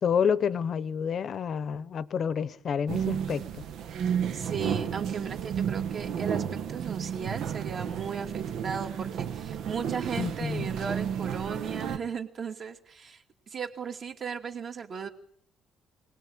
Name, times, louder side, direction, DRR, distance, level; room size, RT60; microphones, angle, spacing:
voice 1, 0.0-3.6 10.2-10.7, left 7 dB, 40° left, 1.0 m, -29 dB
sound 1, 2.9-12.0, right 8 dB, 60° right, 1.4 m, -32 dB
voice 2, 4.3-15.1, right 6 dB, 35° right, 2.5 m, -36 dB
24.5 x 19.0 x 8.8 m
cardioid pair, 170°, 0 cm